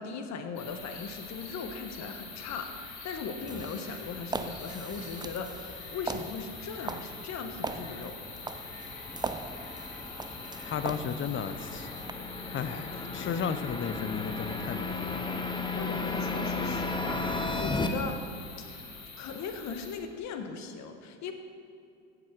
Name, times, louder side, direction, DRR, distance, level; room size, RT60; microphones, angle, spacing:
voice 1, 0.0-8.2 15.4-18.2 18.8-21.3, left 5 dB, 50° left, 7 dB, 1.5 m, -39 dB
sound 1, 0.6-19.9, left 4 dB, 75° left, 3.3 m, -45 dB
sound 2, 3.4-12.1, right 3 dB, 10° right, 0.6 m, -41 dB
sound 3, 6.4-17.9, left 3 dB, 15° left, 1.1 m, -35 dB
voice 2, 10.6-11.9 12.5-15.2, left 7 dB, 35° left, 13 dB, 0.8 m, -34 dB
16.0 x 7.5 x 4.7 m, 2.6 s
hypercardioid pair, 80°, 36 cm